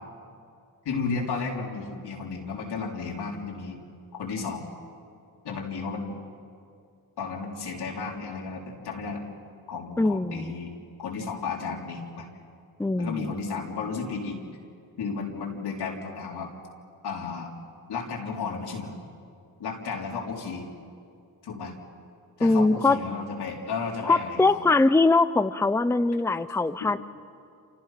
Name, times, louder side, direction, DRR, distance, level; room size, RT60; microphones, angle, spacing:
voice 1, 0.8-3.8 4.1-4.7 5.4-6.2 7.2-9.2 9.7-10.7 11.0-12.3 13.0-14.4 15.0-16.5 17.0-17.5 17.9-18.9 19.6-20.6 21.4-21.7 22.4-24.6, left 4 dB, 85° left, -1 dB, 4.0 m, -33 dB
voice 2, 10.0-10.5 12.8-13.3 22.4-23.0 24.0-27.0, left 3 dB, 5° left, 12 dB, 0.7 m, -22 dB
28.5 x 28.0 x 5.9 m, 2.4 s
cardioid pair, 90°, 38 cm